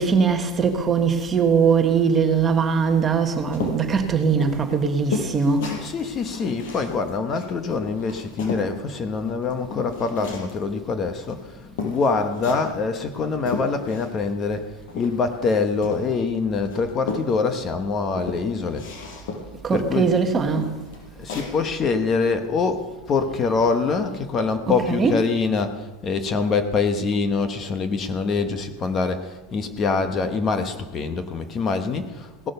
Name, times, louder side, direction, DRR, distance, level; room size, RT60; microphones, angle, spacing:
voice 1, 0.0-5.7 19.6-20.8 24.7-25.3, right 5 dB, 20° right, 1.3 m, -21 dB
sound 1, 3.5-8.7 9.1-10.6 11.3-11.4 11.8-12.8 13.1-14.3 14.6-16.3 16.7-17.7 18.1-19.6 20.0-20.2 20.5-21.5, left 4 dB, 70° left, 5.4 m, -33 dB
voice 2, 5.8-18.9 19.7-20.1 21.1-32.5, left 4 dB, 25° left, 1.0 m, -25 dB
17.5 x 11.0 x 6.8 m
supercardioid pair, 160°, 0 cm